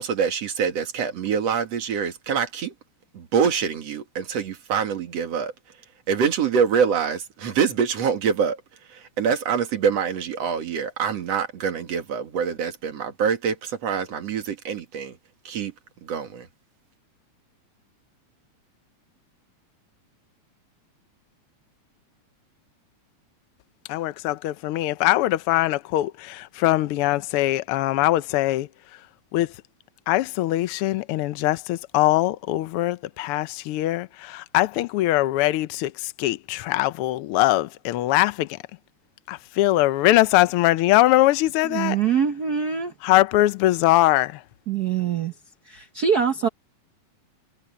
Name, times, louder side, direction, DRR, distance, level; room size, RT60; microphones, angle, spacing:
voice 1, 0.0-2.7 3.1-5.5 6.1-8.6 8.9-15.2 15.4-15.7 16.0-16.5, right 7 dB, 60° right, 3.0 m, -25 dB
voice 2, 23.9-28.7 29.3-29.5 30.1-38.6 39.3-42.0 43.0-44.4, left 16 dB, 90° left, 1.2 m, -22 dB
voice 3, 41.6-42.9 44.7-45.3 45.6-46.5, right 7 dB, 90° right, 0.8 m, -24 dB
omnidirectional pair, 3.3 m